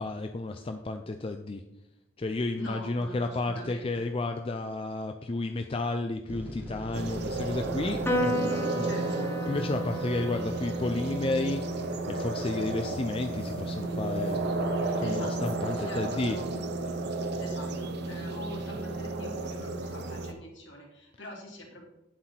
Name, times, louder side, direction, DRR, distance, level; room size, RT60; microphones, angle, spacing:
voice 1, 0.0-1.6 2.2-8.9 9.5-11.6 12.1-14.4 15.0-16.4, left 2 dB, 25° left, 7 dB, 0.4 m, -32 dB
voice 2, 2.5-4.1 8.8-9.3 15.0-16.5 17.4-21.8, left 1 dB, 60° left, -1 dB, 2.6 m, -44 dB
sound 1, 6.3-8.2, left 1 dB, 10° right, 1.4 m, -40 dB
sound 2, 6.9-20.3, right 2 dB, 55° right, 0.8 m, -32 dB
Piano, 8.1-14.7, equal, 10° left, 1.0 m, -36 dB
9.0 x 7.5 x 4.4 m, 0.93 s
head